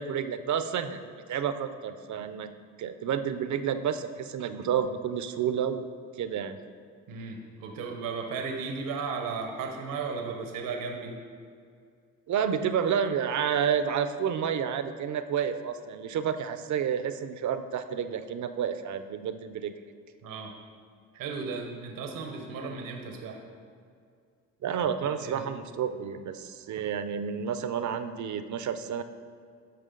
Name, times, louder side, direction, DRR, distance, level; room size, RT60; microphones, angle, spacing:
voice 1, 0.0-2.5 2.8-5.9 6.2-6.6 12.3-19.7 24.6-29.0, right 8 dB, 60° right, 10 dB, 0.6 m, -30 dB
voice 2, 7.1-11.2 20.2-20.5 21.1-23.4 25.2-25.4, right 4 dB, 80° right, 3 dB, 0.9 m, -35 dB
12.5 x 4.9 x 3.8 m, 2.2 s
supercardioid pair, 65°, 33 cm